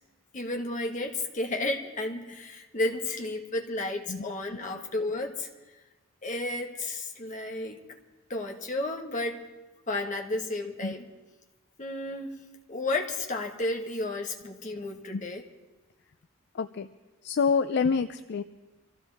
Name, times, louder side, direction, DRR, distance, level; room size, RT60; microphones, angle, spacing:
voice 1, 0.3-5.5 6.2-7.8 8.3-9.4 9.9-11.0 11.8-12.4 12.7-15.5, left 2 dB, 35° left, 2 dB, 1.5 m, -32 dB
voice 2, 16.6-16.9 17.2-18.4, left 5 dB, 55° left, 10 dB, 0.4 m, -27 dB
25.0 x 15.5 x 3.5 m, 1.2 s
head